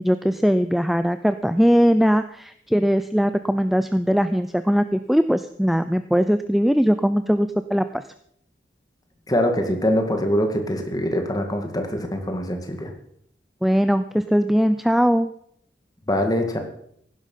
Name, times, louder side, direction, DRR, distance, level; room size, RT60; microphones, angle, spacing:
voice 1, 0.0-8.0 13.6-15.3, equal, ahead, 11 dB, 0.4 m, -20 dB
voice 2, 9.3-12.9 16.1-16.6, equal, 20° left, 4 dB, 2.2 m, -23 dB
15.5 x 11.5 x 5.7 m, 0.68 s
head